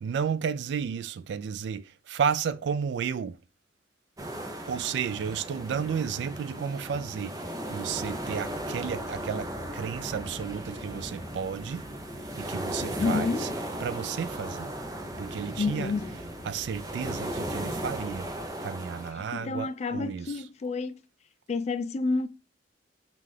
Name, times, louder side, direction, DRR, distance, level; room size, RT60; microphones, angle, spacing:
voice 1, 0.0-3.4 4.7-11.8 12.4-13.5 13.8-14.7 15.2-15.9 16.4-18.3 18.6-20.3, right 7 dB, 65° right, 0.3 m, -32 dB
sound 1, 4.2-19.1, right 1 dB, 20° right, 0.7 m, -36 dB
sound 2, 7.8-18.5, left 1 dB, 65° left, 0.9 m, -49 dB
voice 2, 13.0-13.5 15.6-16.2 19.1-21.0 21.5-22.3, left 4 dB, 35° left, 0.3 m, -29 dB
5.6 x 2.5 x 3.2 m
head